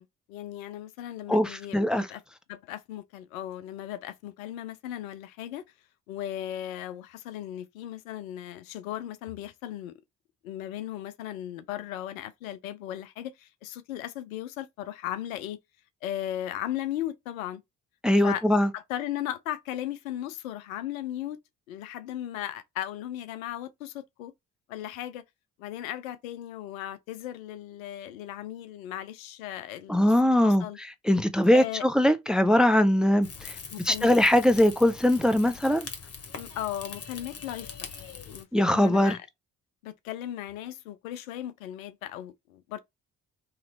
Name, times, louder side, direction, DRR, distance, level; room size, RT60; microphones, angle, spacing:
voice 1, 0.0-2.2 2.5-5.6 6.1-10.0 10.4-15.6 16.0-17.6 18.2-18.4 18.7-21.4 21.7-24.3 24.7-25.2 25.6-30.1 30.4-30.8 31.5-31.8 33.7-34.2 36.4-37.7 37.9-39.3 39.8-42.8, left 12 dB, 80° left, 0.5 m, -37 dB
voice 2, 1.3-2.1 18.0-18.7 29.9-30.6 31.0-33.6 33.8-35.9 38.5-39.2, left 1 dB, ahead, 0.4 m, -21 dB
Rain / Fire, 33.2-38.4, left 6 dB, 35° left, 1.0 m, -42 dB
3.1 x 2.8 x 4.0 m
figure-of-eight pair, 40°, 40 cm